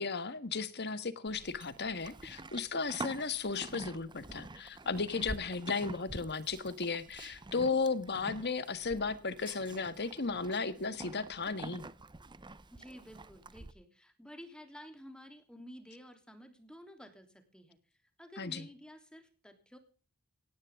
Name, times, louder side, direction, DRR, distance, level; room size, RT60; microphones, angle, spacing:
voice 1, 0.0-11.9 18.4-18.7, left 4 dB, 50° left, 12 dB, 1.5 m, -35 dB
Livestock farm animals working animals, 1.3-13.7, right 2 dB, 20° right, 0.7 m, -47 dB
voice 2, 12.7-17.8 18.2-19.8, equal, 5° left, 6 dB, 3.2 m, -52 dB
18.0 x 15.0 x 3.7 m, 0.38 s
head